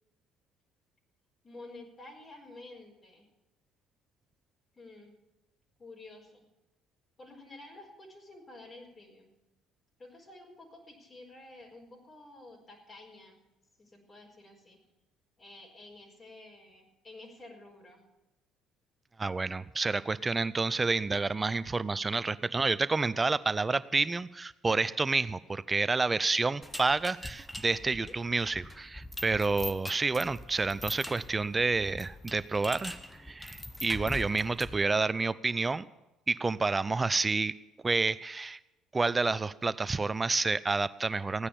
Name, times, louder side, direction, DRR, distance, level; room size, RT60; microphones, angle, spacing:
voice 1, 1.4-3.3 4.7-5.1 5.8-6.5 7.2-9.3 10.0-13.4 13.8-14.8 15.4-18.0 28.0-28.2, left 2 dB, 35° left, -1 dB, 4.5 m, -51 dB
voice 2, 19.2-32.9 33.2-35.9 36.3-37.5 37.8-38.6 38.9-41.5, right 3 dB, 25° right, 17 dB, 0.6 m, -29 dB
sound 1, 26.6-34.9, left 1 dB, 10° left, 1.2 m, -43 dB
15.5 x 9.8 x 7.1 m, 0.97 s
hypercardioid pair, 55°, 0 cm